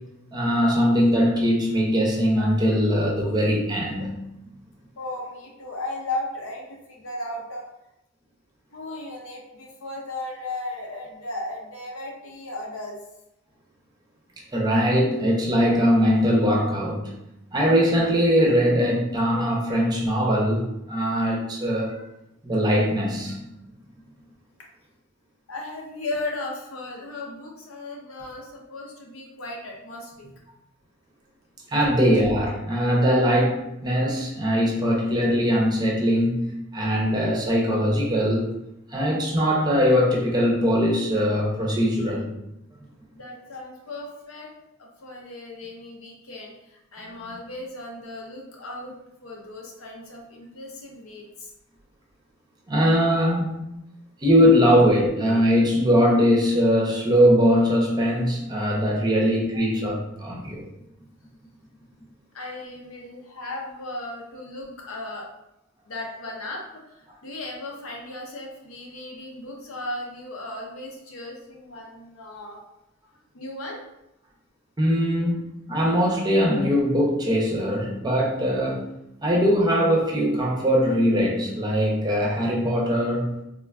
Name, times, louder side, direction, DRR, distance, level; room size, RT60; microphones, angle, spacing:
voice 1, 0.3-4.2 14.5-17.1 17.5-22.0 22.4-23.4 31.7-38.5 38.9-42.3 47.2-47.4 52.7-53.5 54.2-60.7 74.8-75.4 75.7-78.8 79.2-83.4, equal, 20° right, -2 dB, 0.5 m, -21 dB
voice 2, 5.0-7.7 8.7-13.0 21.9-22.1 23.3-23.4 25.5-30.3 31.8-31.9 43.1-44.5 44.8-49.0 49.2-51.5 59.5-59.6 62.3-65.3 65.8-72.6 73.3-73.8, left 2 dB, 90° left, -1 dB, 0.7 m, -36 dB
3.5 x 2.3 x 2.3 m, 0.88 s
head